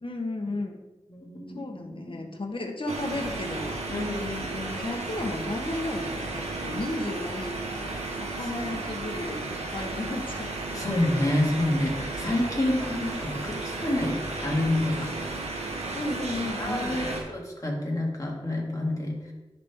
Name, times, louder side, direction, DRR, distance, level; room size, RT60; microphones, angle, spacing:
voice 1, 0.0-0.8 1.5-3.8 4.7-7.5 7.8-11.2 15.9-17.2, left 2 dB, 50° left, 3 dB, 1.1 m, -34 dB
voice 2, 1.1-2.4 3.9-4.8 8.4-8.5 10.7-15.3 16.6-19.3, left 1 dB, 30° left, -2 dB, 2.0 m, -29 dB
sound 1, 2.9-17.2, right 3 dB, 80° right, 1.1 m, -34 dB
10.5 x 3.5 x 3.5 m, 1.1 s
cardioid pair, 40°, 11 cm